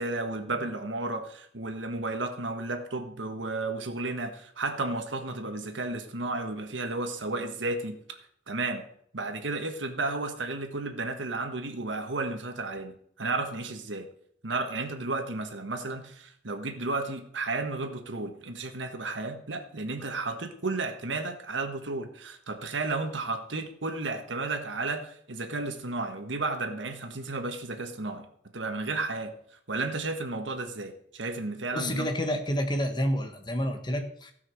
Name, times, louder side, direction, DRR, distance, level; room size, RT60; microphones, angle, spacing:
voice 1, 0.0-8.2 8.5-8.9 9.1-14.1 14.4-28.3 28.5-29.4 29.7-32.1, right 3 dB, 80° right, 7 dB, 1.5 m, -33 dB
voice 2, 31.7-34.3, equal, 25° left, 6 dB, 1.4 m, -29 dB
16.5 x 5.9 x 6.4 m, 0.66 s
head